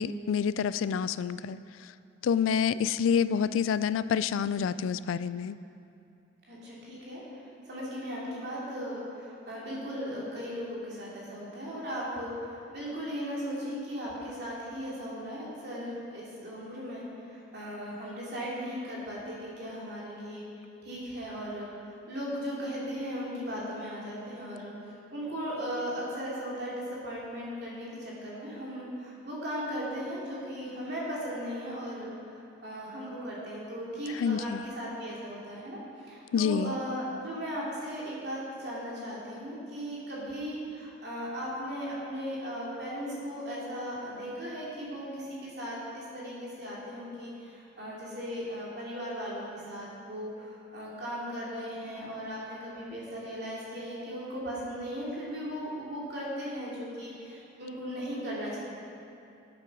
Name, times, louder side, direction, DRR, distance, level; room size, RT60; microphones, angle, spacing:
voice 1, 0.0-1.9 2.2-5.6 34.1-34.7 36.3-36.8, left 7 dB, 85° left, 15 dB, 0.3 m, -28 dB
voice 2, 6.5-7.2 7.7-20.4 20.8-24.7 25.1-32.1 32.6-58.6, equal, 55° right, -6 dB, 2.8 m, -37 dB
9.2 x 7.9 x 6.0 m, 2.7 s
head